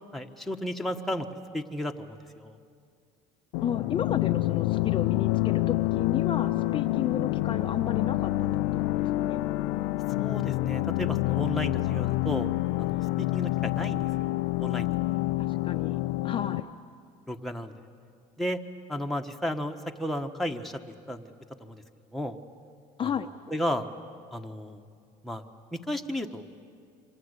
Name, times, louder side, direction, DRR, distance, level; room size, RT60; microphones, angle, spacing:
voice 1, 0.1-1.3 1.5-2.5 10.2-12.5 12.8-14.3 14.6-15.0 17.3-17.7 18.4-18.6 18.9-20.8 21.1-21.3 21.6-21.8 22.1-22.4 23.0-23.1 23.5-23.9 24.3-24.8 25.2-25.4 25.7-26.6, equal, ahead, 2 dB, 1.5 m, -33 dB
sound 1, 3.5-16.6, left 18 dB, 85° left, 0.6 m, -27 dB
voice 2, 3.6-9.4 15.4-16.7 23.0-23.3, left 7 dB, 30° left, 5 dB, 0.9 m, -33 dB
28.0 x 25.0 x 8.3 m, 2.2 s
supercardioid pair, 110°, 16 cm